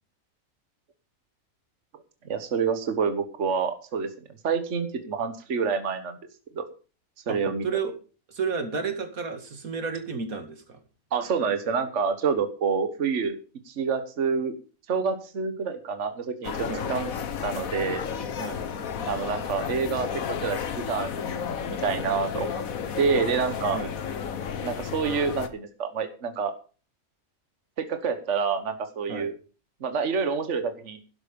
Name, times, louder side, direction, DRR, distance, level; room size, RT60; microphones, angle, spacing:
voice 1, 2.2-4.1 4.4-6.2 6.5-6.6 7.3-7.7 11.1-13.4 13.7-14.5 14.9-18.0 19.1-20.1 20.4-22.6 23.0-23.8 24.6-26.5 27.8-29.3 29.8-31.0, right 5 dB, 60° right, 9 dB, 1.5 m, -27 dB
voice 2, 8.3-10.8 16.7-16.9 18.4-18.6 23.7-23.9 29.1-29.3, right 5 dB, 90° right, 7 dB, 2.6 m, -31 dB
sound 1, 16.4-25.5, left 7 dB, 85° left, 1.6 m, -32 dB
12.0 x 11.5 x 5.2 m, 0.36 s
omnidirectional pair, 1.4 m